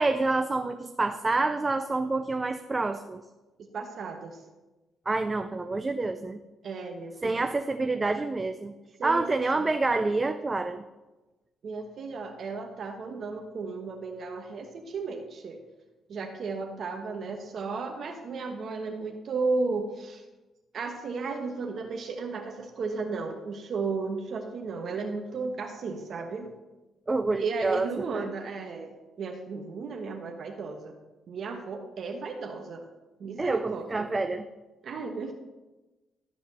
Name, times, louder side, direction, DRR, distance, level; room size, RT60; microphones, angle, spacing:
voice 1, 0.0-3.2 5.1-6.4 7.2-8.7 9.0-10.8 27.1-28.2 33.4-34.4, right 3 dB, 25° right, 9 dB, 0.5 m, -27 dB
voice 2, 3.7-4.4 6.6-7.4 9.0-9.7 11.6-15.6 16.1-20.2 20.7-26.5 27.3-28.9 29.2-30.9 31.3-32.8 33.2-34.1 34.8-35.3, right 4 dB, 55° right, 3 dB, 1.1 m, -34 dB
13.0 x 4.3 x 7.1 m, 1.1 s
cardioid pair, 90°, 0 cm